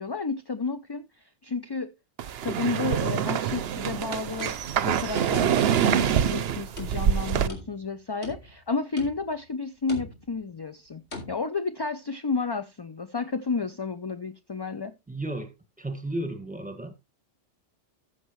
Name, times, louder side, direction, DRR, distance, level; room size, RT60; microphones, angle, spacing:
voice 1, 0.0-1.9 2.4-11.0 11.3-14.9, left 4 dB, 30° left, 0.5 m, -31 dB
sound 1, 2.2-7.5, right 9 dB, 65° right, 0.9 m, -25 dB
sound 2, 4.2-5.7 6.0-6.4 6.8-7.9 8.2-8.7 9.0-9.4 9.9-10.4 11.1-11.3, left 2 dB, 70° left, 3.2 m, -42 dB
voice 2, 15.1-16.9, right 1 dB, 5° right, 1.7 m, -34 dB
13.5 x 7.2 x 3.1 m
omnidirectional pair, 1.2 m